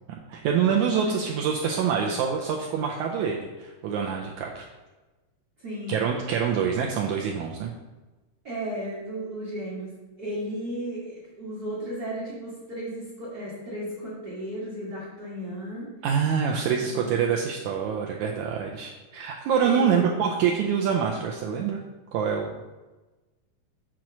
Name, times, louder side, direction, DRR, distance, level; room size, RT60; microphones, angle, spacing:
voice 1, 0.1-4.7 5.9-7.7 16.0-21.8 22.1-22.5, right 7 dB, 85° right, 0 dB, 1.7 m, -26 dB
voice 2, 5.6-6.0 8.4-15.9 19.6-20.1, equal, 60° right, -6 dB, 0.9 m, -35 dB
7.4 x 3.1 x 5.9 m, 1.2 s
omnidirectional pair, 3.9 m